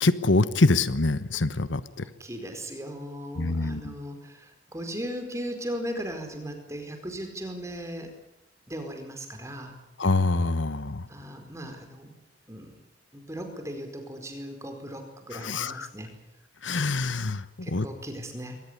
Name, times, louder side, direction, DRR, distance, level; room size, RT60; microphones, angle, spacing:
voice 1, 0.0-2.1 3.4-3.9 10.0-11.0 15.3-15.9 16.6-17.9, left 3 dB, 80° left, 14 dB, 1.2 m, -25 dB
voice 2, 2.2-8.1 8.7-9.8 11.1-12.1 12.5-12.8 13.1-16.1 17.6-18.6, equal, 15° right, 5 dB, 4.7 m, -37 dB
22.5 x 19.5 x 10.0 m, 0.84 s
head